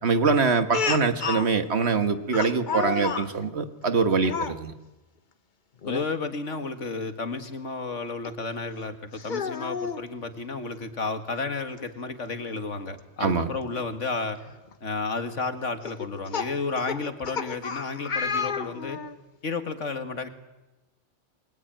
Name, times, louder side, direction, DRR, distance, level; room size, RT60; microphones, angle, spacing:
voice 1, 0.0-4.7 13.2-13.5, right 4 dB, 60° right, 9 dB, 1.8 m, -24 dB
Speech, 0.7-1.5 2.3-3.3 4.2-4.6 5.8-6.1 6.5-6.6 8.2-8.3 9.1-10.0 11.4-11.5 11.8-11.9 13.8-13.9 14.5-14.7 15.8-19.2, left 5 dB, 40° left, 1.2 m, -31 dB
voice 2, 5.8-14.4 14.8-19.0 19.4-20.3, left 4 dB, 80° left, 8 dB, 2.3 m, -32 dB
28.5 x 22.0 x 9.0 m, 1.1 s
omnidirectional pair, 1.2 m